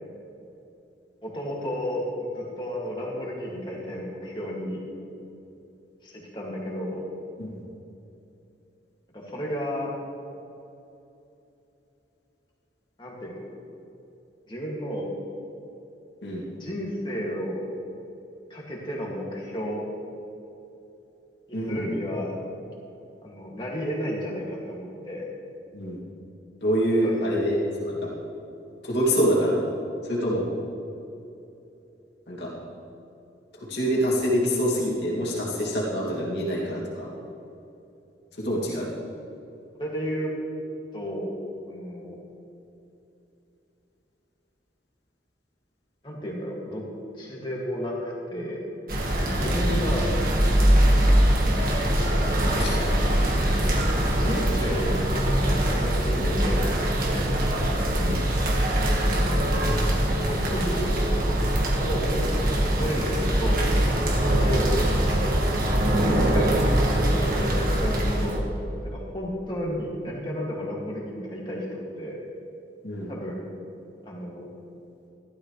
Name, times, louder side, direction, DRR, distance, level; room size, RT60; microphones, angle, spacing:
voice 1, 1.2-4.8 6.0-7.0 9.1-9.9 13.0-13.4 14.5-15.1 16.6-17.6 18.5-19.9 21.5-22.4 23.2-25.3 27.0-27.4 39.7-40.4 40.9-41.3 41.7-42.2 46.0-46.9 47.2-48.6 49.2-50.2 52.4-52.9 53.2-53.5 54.0-57.2 59.0-59.3 60.3-60.9 61.6-62.3 62.7-64.0 64.4-65.2 66.0-66.5 67.1-72.2 73.1-73.4 74.0-74.5, equal, 25° left, -3 dB, 2.3 m, -32 dB
voice 2, 21.5-21.9 25.7-26.0 26.6-28.1 28.8-29.6 30.0-30.5 32.3-32.5 33.6-37.1 38.4-38.9 49.4-49.6 52.6-52.8 58.0-58.2 66.0-66.2 72.8-73.1, equal, 75° left, -5 dB, 2.5 m, -26 dB
sound 1, 48.9-68.4, right 1 dB, 50° right, 1.7 m, -22 dB
15.5 x 12.5 x 3.3 m, 2.9 s
head